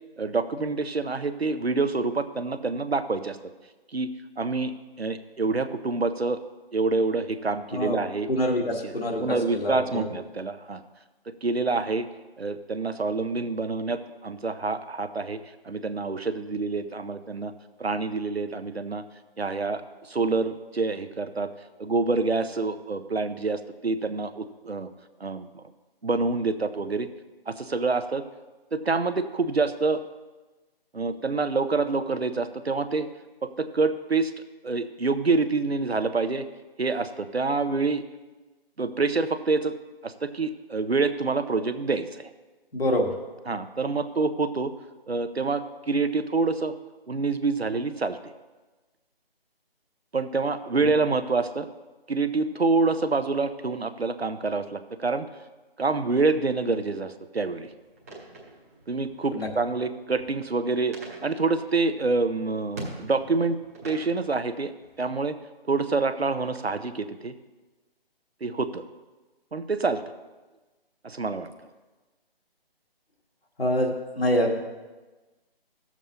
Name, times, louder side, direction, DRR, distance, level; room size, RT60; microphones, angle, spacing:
voice 1, 0.2-3.4 3.9-6.4 6.7-8.3 8.8-8.9 9.2-10.8 11.4-12.1 12.4-15.4 15.6-17.5 17.8-19.0 19.4-21.5 21.8-24.9 25.2-25.6 26.0-27.1 27.5-28.2 28.7-30.0 30.9-33.1 33.4-34.3 34.6-36.5 36.8-38.0 38.8-39.8 40.0-42.3 43.5-44.7 45.1-46.7 47.1-48.3 50.1-51.7 52.1-55.2 55.8-57.7 58.9-63.6 63.8-64.7 65.0-65.3 65.7-67.3 68.4-68.8 69.5-70.0 71.0-71.5, right 3 dB, 90° right, 11 dB, 0.7 m, -27 dB
voice 2, 8.3-10.1 42.7-43.1 50.8-50.9 59.3-59.5 73.6-74.6, equal, 70° left, 1 dB, 1.6 m, -26 dB
sound 1, 57.4-65.0, right 1 dB, 15° right, 0.9 m, -45 dB
14.0 x 7.2 x 2.9 m, 1.2 s
figure-of-eight pair, 150°, 30 cm